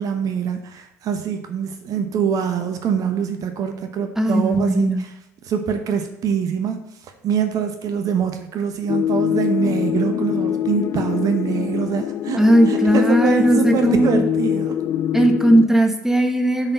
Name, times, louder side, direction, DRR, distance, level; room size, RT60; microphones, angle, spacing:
voice 1, 0.0-5.1 5.4-14.8, right 7 dB, 50° right, 7 dB, 0.8 m, -24 dB
voice 2, 4.2-5.0 12.4-14.3 15.1-16.7, right 1 dB, 5° right, 6 dB, 1.3 m, -17 dB
sound 1, 8.9-15.7, left 10 dB, 45° left, 0.4 m, -23 dB
8.8 x 4.2 x 5.6 m, 0.86 s
hypercardioid pair, 60°, 7 cm